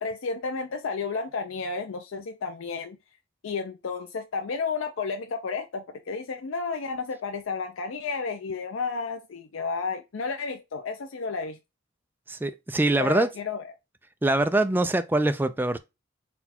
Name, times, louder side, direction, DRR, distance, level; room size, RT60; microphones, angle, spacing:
voice 1, 0.0-3.0 3.4-11.6 13.0-13.6, left 4 dB, 80° left, 0.5 m, -32 dB
voice 2, 12.3-13.3 14.2-15.8, right 2 dB, 10° right, 0.3 m, -23 dB
4.2 x 2.3 x 4.1 m
head